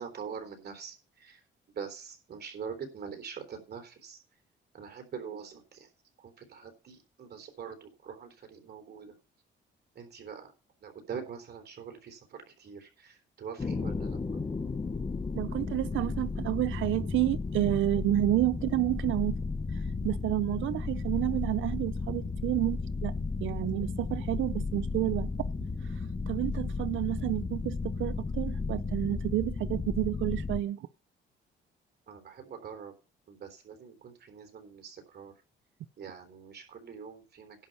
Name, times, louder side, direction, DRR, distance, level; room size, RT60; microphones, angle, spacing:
voice 1, 0.0-1.4 1.7-4.2 4.7-5.9 6.2-9.2 10.0-10.5 10.8-14.2 32.1-32.9 33.3-35.3 36.0-37.7, right 6 dB, 55° right, 3.5 m, -44 dB
sound 1, 13.6-30.6, left 4 dB, 25° left, 0.9 m, -34 dB
voice 2, 15.3-19.4 20.0-23.1 23.4-25.3 26.3-30.8, right 15 dB, 75° right, 0.6 m, -30 dB
11.0 x 5.1 x 8.0 m
cardioid pair, 90°, 20 cm